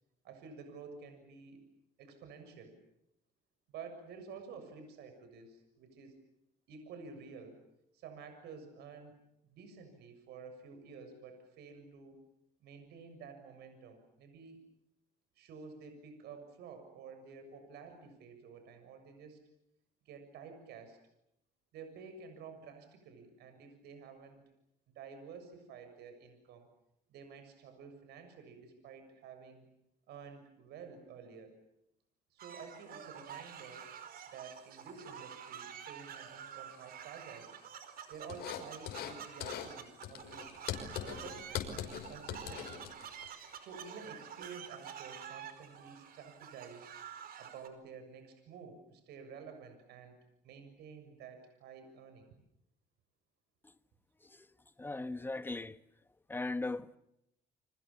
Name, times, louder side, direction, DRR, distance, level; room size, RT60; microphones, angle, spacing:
voice 1, 0.2-1.6 2.0-2.8 3.7-6.2 6.7-7.7 7.9-9.2 9.5-12.2 12.6-14.6 15.4-19.4 20.1-21.0 21.7-24.4 25.0-26.7 27.1-29.7 30.1-31.5 32.3-33.9 34.3-37.5 38.1-40.6 41.0-42.9 43.6-46.9 47.4-50.2 50.4-52.3, right 5 dB, 80° right, 6.9 m, -51 dB
sound 1, 32.4-47.7, right 8 dB, 60° right, 5.0 m, -49 dB
sound 2, 38.3-39.1 39.4-39.7 40.0-43.3, left 9 dB, 75° left, 5.5 m, -41 dB
voice 2, 54.8-55.8 56.3-57.0, left 2 dB, 10° left, 1.3 m, -37 dB
30.0 x 26.5 x 7.2 m
cardioid pair, 110°, 17 cm